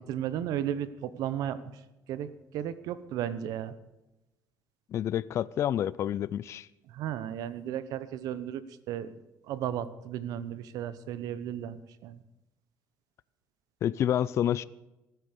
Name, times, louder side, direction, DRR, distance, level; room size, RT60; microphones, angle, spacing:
voice 1, 0.1-1.7 2.1-2.3 2.5-3.7 6.9-8.6 8.9-9.1 9.5-12.2, right 10 dB, 70° right, 15 dB, 0.9 m, -34 dB
voice 2, 4.9-6.7 13.8-14.6, left 10 dB, 45° left, 18 dB, 0.4 m, -28 dB
15.5 x 9.3 x 6.7 m, 0.99 s
cardioid pair, 145°, 7 cm